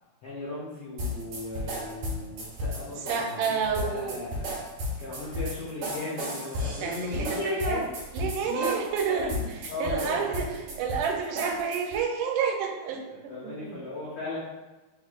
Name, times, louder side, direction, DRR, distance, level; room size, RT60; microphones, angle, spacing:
voice 1, 0.2-4.5 5.0-7.8 8.5-10.8 13.3-14.4, left 2 dB, 90° left, -6 dB, 1.2 m, -36 dB
sound 1, 1.0-12.0, left 1 dB, 65° right, 2.1 m, -34 dB
voice 2, 3.1-4.3 6.8-7.9 8.1-9.3 9.6-13.8, right 6 dB, 85° right, 3 dB, 2.2 m, -30 dB
6.2 x 2.9 x 2.4 m, 1.2 s
omnidirectional pair, 3.7 m